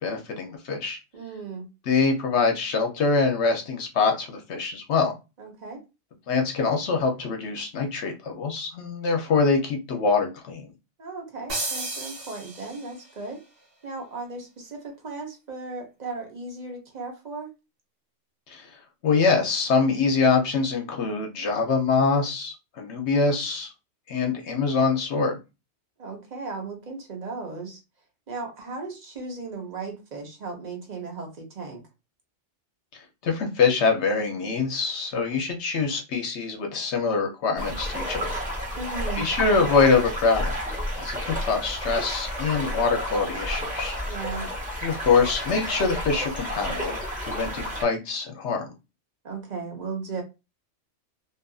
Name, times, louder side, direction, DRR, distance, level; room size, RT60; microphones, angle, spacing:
voice 1, 0.0-1.0 1.9-5.1 6.3-10.7 18.5-18.7 19.0-23.7 24.1-25.4 33.2-38.3 39.2-40.6 41.0-44.0 44.8-48.7, left 4 dB, 70° left, 3 dB, 0.9 m, -24 dB
voice 2, 1.1-1.7 5.4-5.8 11.0-13.4 13.8-17.5 26.0-27.8 28.3-31.8 38.8-39.3 44.1-44.5 49.2-50.2, right 4 dB, 40° right, 2 dB, 0.8 m, -36 dB
sound 1, 11.5-13.1, right 2 dB, 75° right, 1.3 m, -33 dB
sound 2, 37.6-47.8, equal, 5° right, 1.0 m, -31 dB
2.7 x 2.4 x 2.3 m, 0.26 s
omnidirectional pair, 1.2 m